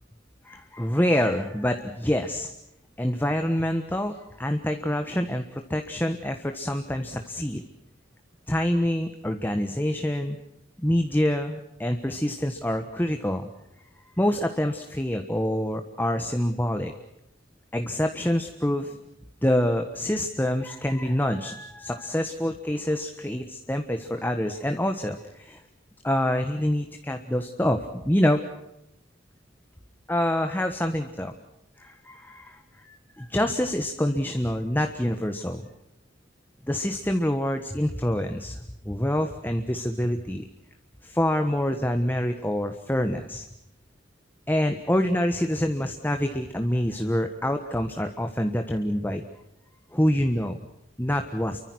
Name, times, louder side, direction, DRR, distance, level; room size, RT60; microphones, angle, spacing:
voice 1, 0.4-2.5 3.0-7.6 8.5-10.4 10.8-13.5 14.2-16.9 17.7-19.0 19.4-25.6 26.0-28.4 30.1-31.3 31.8-32.6 33.3-35.6 36.7-40.4 41.0-43.5 44.5-49.2 49.9-50.6 51.0-51.6, left 1 dB, 10° left, 6 dB, 1.3 m, -26 dB
29.5 x 24.0 x 6.3 m, 0.83 s
head